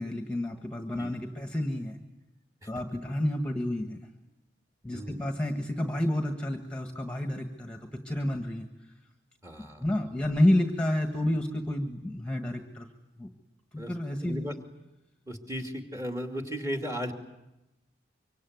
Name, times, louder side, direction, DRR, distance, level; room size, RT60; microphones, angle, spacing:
voice 1, 0.0-2.0 2.7-4.0 4.8-8.7 9.8-12.9 13.2-13.3 13.9-14.5, left 1 dB, 5° left, 4 dB, 1.6 m, -29 dB
voice 2, 4.9-5.3 9.4-9.8 13.8-13.9 14.2-14.5 15.3-17.1, equal, 15° right, 4 dB, 2.5 m, -35 dB
25.0 x 24.5 x 9.5 m, 0.96 s
head